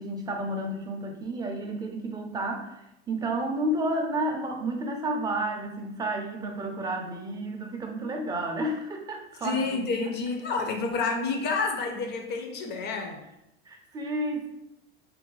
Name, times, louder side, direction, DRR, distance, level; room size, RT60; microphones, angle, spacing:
voice 1, 0.0-10.1 13.7-14.5, right 1 dB, 15° right, 2 dB, 0.4 m, -31 dB
voice 2, 9.4-13.2, left 4 dB, 35° left, 4 dB, 0.6 m, -29 dB
2.6 x 2.2 x 3.0 m, 0.85 s
hypercardioid pair, 95°, 30 cm